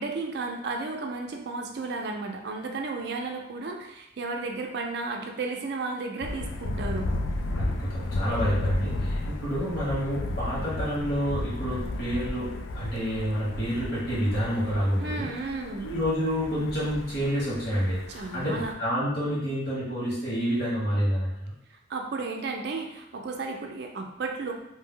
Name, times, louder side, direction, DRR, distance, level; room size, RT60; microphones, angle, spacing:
voice 1, 0.0-7.1 15.0-15.9 18.1-18.7 21.9-24.5, right 3 dB, 60° right, 2 dB, 0.4 m, -33 dB
Thunder, 6.2-18.7, left 2 dB, 85° left, 0.3 m, -33 dB
voice 2, 7.5-15.3 15.8-21.3, equal, 55° left, -7 dB, 1.4 m, -28 dB
2.7 x 2.0 x 3.6 m, 0.86 s
head